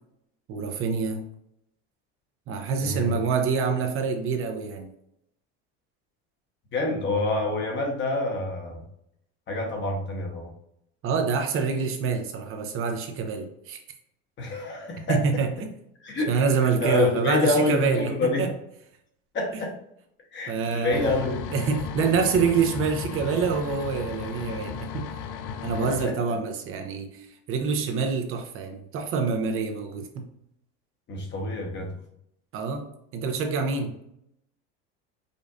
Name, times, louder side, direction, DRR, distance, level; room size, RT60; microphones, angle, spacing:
voice 1, 0.5-1.2 2.5-4.9 11.0-13.8 15.1-15.7 16.3-18.1 18.4-18.5 20.5-21.2 21.5-25.1 25.6-30.3 32.5-34.0, right 5 dB, 45° right, 5 dB, 0.6 m, -26 dB
voice 2, 2.8-3.1 6.7-8.8 9.5-10.5 14.4-15.2 16.0-16.3 16.8-18.4 19.3-19.7 20.3-21.4 22.0-22.1 25.8-26.2 31.1-31.9, left 2 dB, 40° left, 1 dB, 1.0 m, -27 dB
sound 1, 20.9-26.1, left 6 dB, 70° left, 0.5 m, -35 dB
5.2 x 2.5 x 2.4 m, 0.77 s
cardioid pair, 130°, 30 cm